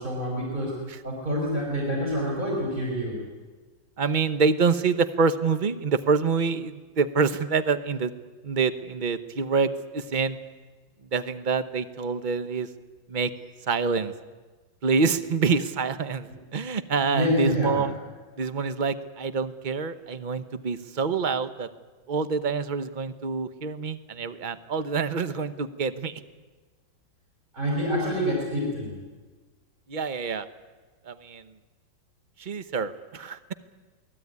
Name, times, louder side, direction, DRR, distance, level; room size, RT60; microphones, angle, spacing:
voice 1, 0.0-0.7 1.0-3.2 16.2-16.3 17.1-17.8 27.5-28.9, equal, 20° right, -2 dB, 5.9 m, -27 dB
voice 2, 4.0-8.1 8.4-10.4 11.1-12.7 13.1-13.3 13.7-14.1 14.8-17.9 18.4-21.7 22.1-26.1 29.9-30.5 31.1-31.4 32.4-33.4, right 5 dB, 40° right, 12 dB, 0.7 m, -26 dB
28.0 x 19.0 x 9.6 m, 1.4 s
omnidirectional pair, 2.1 m